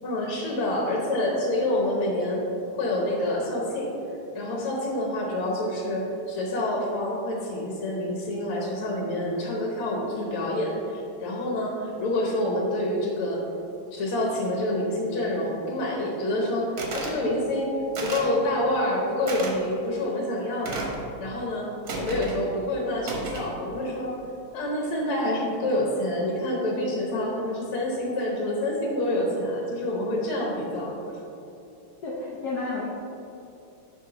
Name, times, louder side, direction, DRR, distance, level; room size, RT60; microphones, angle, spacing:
voice 1, 0.0-2.4 2.7-3.9 4.3-13.4 13.9-17.7 18.0-20.8 21.2-21.7 22.0-24.1 24.5-30.9, left 1 dB, 80° left, -1 dB, 1.8 m, -27 dB
sound 1, 16.8-17.2 17.9-18.4 19.3-19.5 20.6-21.0 21.9-22.4 23.0-23.5, right 3 dB, 55° right, 1.2 m, -33 dB
voice 2, 32.0-32.8, left 3 dB, 65° left, -5 dB, 1.0 m, -31 dB
10.0 x 3.5 x 3.8 m, 2.8 s
omnidirectional pair, 2.3 m